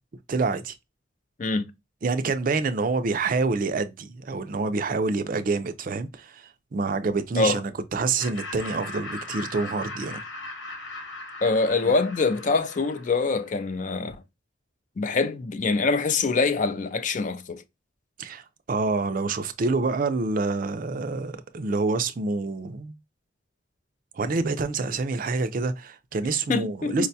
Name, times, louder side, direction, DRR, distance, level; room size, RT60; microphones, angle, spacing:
voice 1, 0.3-0.8 2.0-10.2 11.8-11.9 18.2-23.0 24.1-27.1, right 3 dB, 45° right, 0.4 m, -27 dB
Laughter, 8.2-13.5, left 2 dB, 85° left, 1.2 m, -39 dB
voice 2, 11.4-14.2 15.0-17.6 26.5-27.1, left 3 dB, 40° left, 0.4 m, -24 dB
4.7 x 2.2 x 2.6 m
head